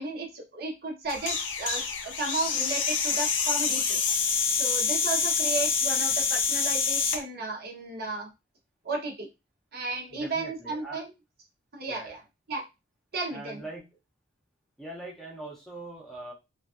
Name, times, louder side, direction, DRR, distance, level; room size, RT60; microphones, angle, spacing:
voice 1, 0.0-4.1 4.5-8.3 8.8-9.3 9.7-11.1 11.7-12.2 12.5-12.6 13.1-13.6, right 3 dB, 55° right, 1 dB, 0.9 m, -34 dB
sound 1, 1.1-7.2, left 5 dB, 70° left, 0.5 m, -26 dB
voice 2, 10.1-11.0 11.9-12.2 13.3-13.9 14.8-16.3, right 2 dB, ahead, -2 dB, 0.7 m, -42 dB
3.1 x 2.4 x 2.4 m, 0.24 s
head